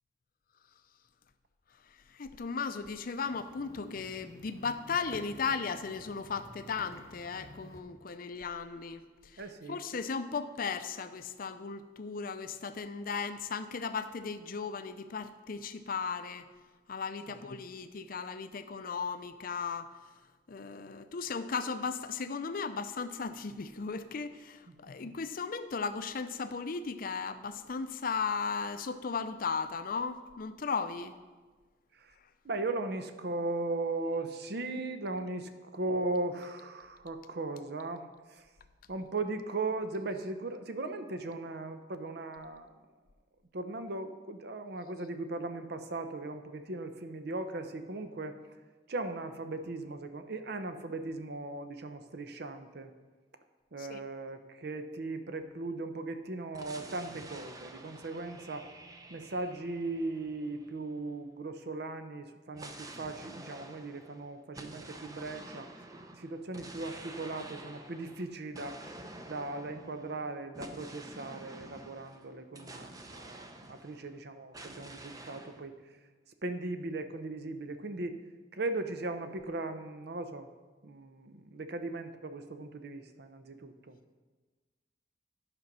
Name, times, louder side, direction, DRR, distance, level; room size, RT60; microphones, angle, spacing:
voice 1, 2.1-9.4 9.7-16.4 16.9-19.9 20.5-31.2 53.8-54.0, left 5 dB, 50° left, 10 dB, 0.5 m, -36 dB
sound 1, 3.2-7.8, left 1 dB, 15° left, 0.9 m, -52 dB
voice 2, 9.4-9.8 17.3-17.4 31.9-32.1 32.4-38.0 38.3-38.5 38.9-42.7 43.5-48.4 48.9-52.9 53.7-58.7 59.1-65.8 66.1-68.8 69.3-75.8 76.4-78.2 78.5-80.5 80.8-84.0, right 2 dB, 60° right, 9 dB, 0.7 m, -38 dB
sound 2, 56.5-61.3 62.5-74.2 74.5-75.6, right 2 dB, 20° right, 0.6 m, -49 dB
11.0 x 5.3 x 6.0 m, 1.3 s
head